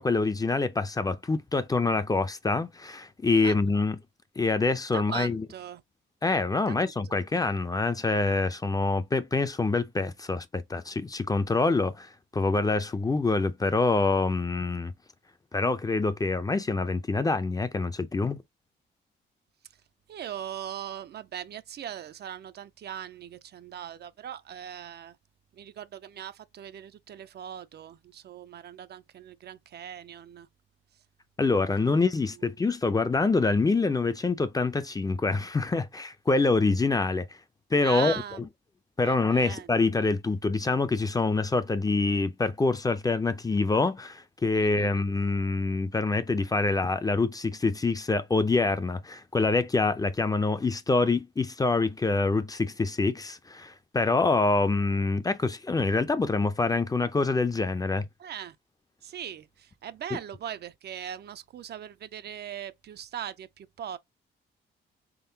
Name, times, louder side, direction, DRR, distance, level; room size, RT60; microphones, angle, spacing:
voice 1, 0.0-4.0 4.4-5.4 6.2-14.9 15.5-18.4 31.4-37.3 37.7-38.1 39.0-58.1 60.1-60.2, left 3 dB, 20° left, 0.5 m, -26 dB
voice 2, 4.9-5.8 6.7-6.9 20.1-25.2 25.5-30.5 31.8-32.0 37.8-38.4 39.0-39.7 44.5-44.9 58.2-58.6 59.0-64.0, right 9 dB, 55° right, 0.5 m, -40 dB
3.7 x 3.7 x 2.7 m
cardioid pair, 90°, 20 cm